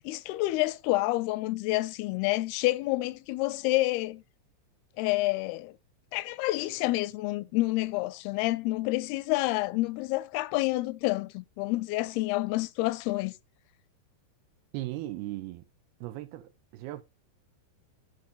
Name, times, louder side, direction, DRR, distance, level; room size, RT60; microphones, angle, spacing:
voice 1, 0.0-4.2 5.0-5.7 6.1-13.3, left 19 dB, 80° left, 2.5 m, -28 dB
voice 2, 14.7-15.7 16.0-17.0, right 16 dB, 80° right, 2.7 m, -37 dB
12.0 x 6.1 x 3.9 m
omnidirectional pair, 4.6 m